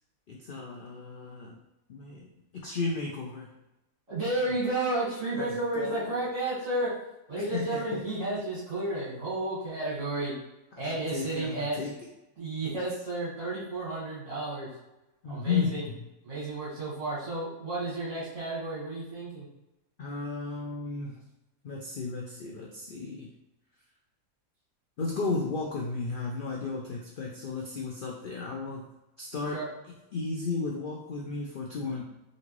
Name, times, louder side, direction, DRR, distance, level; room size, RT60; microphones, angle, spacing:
voice 1, 0.3-1.6 1.9-2.3 2.6-3.5 5.3-6.1 7.3-8.0 10.8-11.9 15.2-15.7 16.0-16.1 20.0-21.1 21.6-23.3 25.0-28.8 29.2-29.6 30.1-32.0, left 4 dB, 65° left, -2 dB, 0.5 m, -34 dB
voice 2, 4.1-6.9 7.3-10.3 10.8-11.8 12.4-14.7 15.3-15.8 16.2-19.5 29.5-29.7, right 2 dB, 65° right, -8 dB, 2.0 m, -32 dB
3.9 x 2.5 x 3.0 m, 0.95 s
omnidirectional pair, 1.5 m